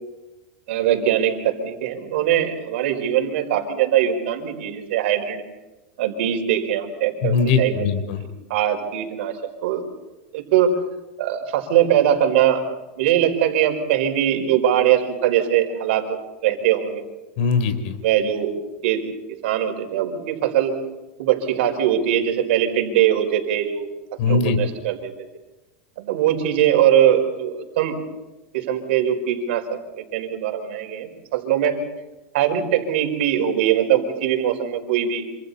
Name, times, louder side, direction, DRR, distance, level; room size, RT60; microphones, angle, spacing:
voice 1, 0.7-5.4 6.0-7.7 8.1-9.3 9.6-9.8 10.3-10.7 11.2-12.6 13.0-17.0 18.0-18.5 18.8-19.0 19.4-20.7 21.2-23.9 24.2-25.1 26.0-27.9 28.5-31.8 32.3-35.3, right 10 dB, 65° right, 4 dB, 4.9 m, -21 dB
voice 2, 7.2-8.2 17.4-18.0 24.2-24.6, left 5 dB, 60° left, 8 dB, 4.0 m, -20 dB
27.5 x 27.0 x 4.2 m, 1.1 s
supercardioid pair, 155°, 7 cm